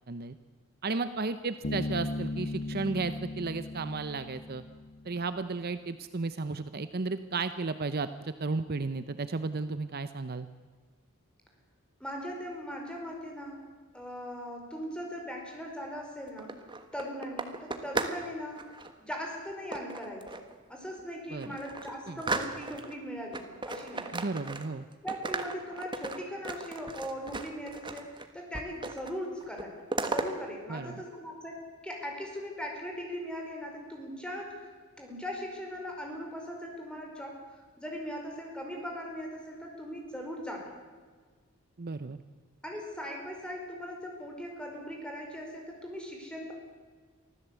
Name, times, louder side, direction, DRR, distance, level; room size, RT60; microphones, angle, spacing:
voice 1, 0.8-4.6 5.0-10.5 21.3-21.6 22.1-22.2 24.1-24.9 30.7-31.0 41.8-42.2, right 3 dB, 45° right, 12 dB, 0.7 m, -34 dB
Bass guitar, 1.6-5.3, left 2 dB, 45° left, 1.0 m, -37 dB
voice 2, 12.0-13.7 13.9-16.5 16.9-18.7 19.0-20.4 20.7-24.2 25.0-31.6 31.8-34.6 35.0-37.4 37.8-40.7 42.6-46.5, equal, 5° left, 0 dB, 4.7 m, -39 dB
sound 1, 16.3-18.2 18.5-18.9 19.7-20.5 21.0-21.1 21.4-23.0 23.3-24.8 25.1-28.3 28.5-29.2 29.4-30.3, right 3 dB, 20° right, 1.4 m, -36 dB
24.5 x 15.0 x 8.2 m, 1.5 s
head